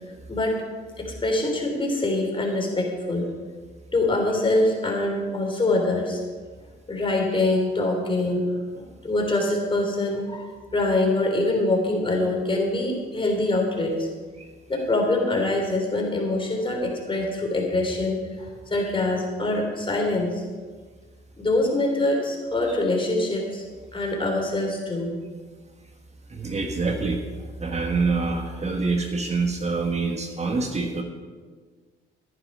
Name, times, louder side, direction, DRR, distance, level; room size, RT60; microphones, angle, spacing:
voice 1, 0.3-0.6 1.0-3.3 3.9-6.2 6.9-14.1 14.7-20.4 21.4-23.6 23.9-25.1, left 2 dB, 25° left, 1 dB, 3.5 m, -24 dB
voice 2, 26.3-27.2 27.6-31.0, right 3 dB, 35° right, 4 dB, 1.5 m, -26 dB
14.0 x 10.0 x 5.5 m, 1.5 s
cardioid pair, 90°, 20 cm